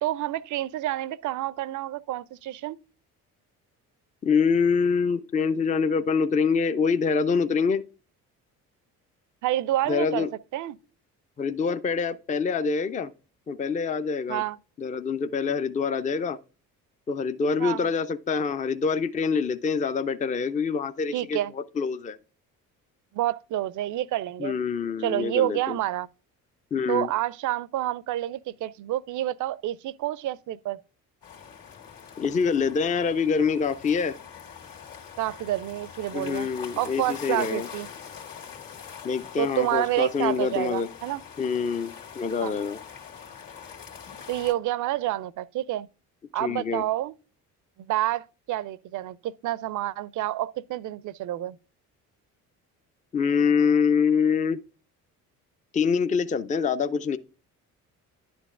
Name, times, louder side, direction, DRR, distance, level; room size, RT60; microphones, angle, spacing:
voice 1, 0.0-2.8 9.4-10.3 10.5-10.8 14.3-14.6 17.6-17.9 21.1-21.5 23.1-24.5 25.0-26.1 26.9-30.8 35.2-36.5 36.8-37.9 39.4-41.2 42.4-42.5 44.3-45.9 46.3-47.1 47.8-51.6, right 14 dB, 45° right, 0.5 m, -28 dB
voice 2, 4.2-7.8 9.9-10.3 11.4-13.1 13.5-14.4 14.8-16.4 17.1-22.2 24.4-25.8 26.7-27.1 32.2-34.2 36.1-37.7 39.0-40.9 41.4-42.8 46.4-46.8 53.1-54.6 55.7-57.2, left 5 dB, 20° left, 0.5 m, -25 dB
sound 1, 31.2-44.5, left 7 dB, 50° left, 2.0 m, -43 dB
11.0 x 7.0 x 2.4 m
figure-of-eight pair, 50°, 44 cm